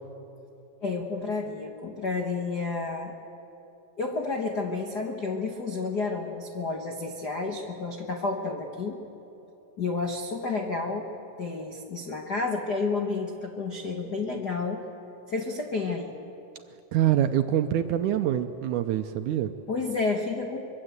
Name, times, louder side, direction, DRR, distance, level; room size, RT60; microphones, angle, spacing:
voice 1, 0.8-3.1 4.0-9.0 9.8-11.1 11.4-14.8 15.3-16.1 19.7-20.6, left 3 dB, 70° left, 2 dB, 0.9 m, -30 dB
voice 2, 16.9-19.5, right 11 dB, 75° right, 8 dB, 1.9 m, -25 dB
24.5 x 23.0 x 8.0 m, 3.0 s
omnidirectional pair, 4.1 m